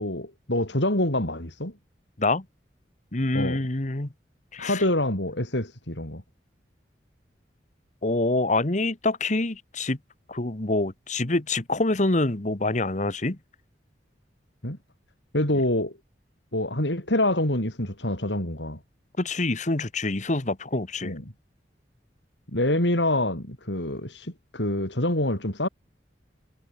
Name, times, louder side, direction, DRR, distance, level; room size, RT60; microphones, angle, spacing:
voice 1, 0.0-1.7 3.3-3.6 4.6-6.2 14.6-14.8 15.3-15.9 16.5-18.8 21.0-21.2 22.5-25.7, left 1 dB, 80° left, 7.1 m, -26 dB
voice 2, 3.1-4.1 4.5-4.8 8.0-10.0 10.3-13.4 19.2-21.1, left 2 dB, 40° left, 1.5 m, -26 dB
head